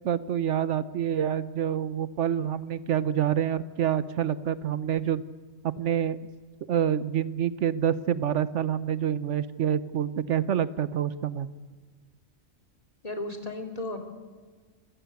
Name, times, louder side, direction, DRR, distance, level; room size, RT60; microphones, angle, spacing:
voice 1, 0.0-5.2 5.6-6.2 6.7-11.5, right 9 dB, 70° right, 16 dB, 1.1 m, -27 dB
voice 2, 13.0-14.0, left 2 dB, 30° left, 4 dB, 2.9 m, -34 dB
25.5 x 15.0 x 8.2 m, 1.5 s
omnidirectional pair, 1.3 m